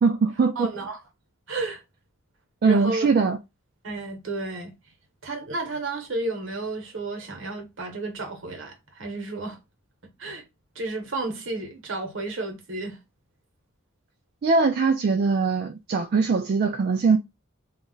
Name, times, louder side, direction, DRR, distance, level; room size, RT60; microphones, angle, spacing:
voice 1, 0.0-0.7 2.6-3.4 14.4-17.2, right 4 dB, 50° right, 0.3 m, -21 dB
voice 2, 0.6-1.0 1.5-1.8 2.6-3.1 3.8-4.7 5.2-9.6 10.2-10.4 10.7-13.0, right 2 dB, 70° right, 1.0 m, -32 dB
2.4 x 2.1 x 3.7 m
head